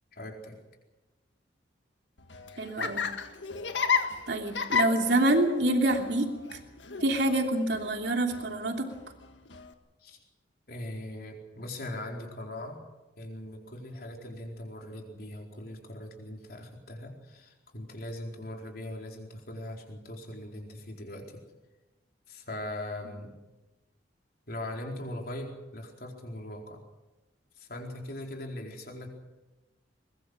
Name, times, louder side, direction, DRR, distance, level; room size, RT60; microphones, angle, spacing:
voice 1, 0.1-0.6 10.0-10.2 10.7-12.8 13.2-21.4 22.3-23.4 24.5-26.8 27.5-29.1, left 1 dB, 55° left, 1 dB, 4.5 m, -40 dB
Laughter, 2.2-9.7, left 6 dB, 85° left, 1.8 m, -34 dB
voice 2, 2.6-3.1 4.3-6.3 7.0-8.9, right 1 dB, 65° right, 3 dB, 3.0 m, -26 dB
22.5 x 21.5 x 6.4 m, 1.1 s
head